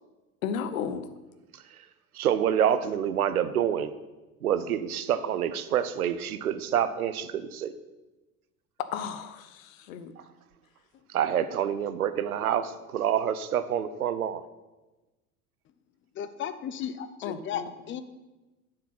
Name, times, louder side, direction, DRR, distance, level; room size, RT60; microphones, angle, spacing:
voice 1, 0.4-1.1 8.9-10.1 17.2-17.7, left 7 dB, 65° left, 11 dB, 0.8 m, -34 dB
voice 2, 2.1-3.9 4.4-7.7 11.1-14.4, right 9 dB, 80° right, 13 dB, 0.7 m, -27 dB
voice 3, 16.2-18.0, left 9 dB, 30° left, 12 dB, 0.6 m, -35 dB
7.5 x 6.8 x 5.6 m, 1.1 s
figure-of-eight pair, 75°, 43 cm